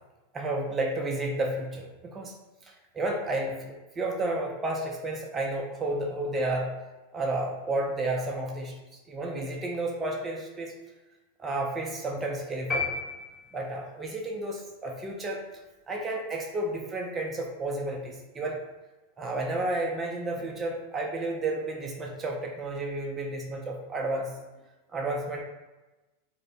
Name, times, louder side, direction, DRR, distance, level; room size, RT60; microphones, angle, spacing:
voice 1, 0.3-2.3 2.6-6.8 7.1-8.8 9.1-10.7 11.4-13.0 13.5-15.4 15.9-18.6 19.2-24.3 24.9-25.4, right 2 dB, 20° right, 0 dB, 0.4 m, -31 dB
sound 1, 12.7-13.9, left 3 dB, 5° left, 0.9 m, -32 dB
2.3 x 2.1 x 2.6 m, 1.1 s
hypercardioid pair, 100°, 0 cm